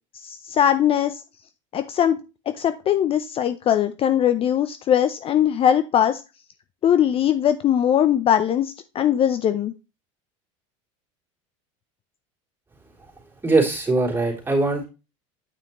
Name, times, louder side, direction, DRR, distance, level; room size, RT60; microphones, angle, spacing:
voice 1, 0.2-1.2 1.7-2.2 2.6-6.2 6.8-9.7, left 10 dB, 35° left, 11 dB, 0.6 m, -20 dB
voice 2, 13.4-14.9, right 3 dB, 10° right, -3 dB, 3.5 m, -21 dB
9.3 x 5.7 x 3.1 m, 0.29 s
supercardioid pair, 105°, 17 cm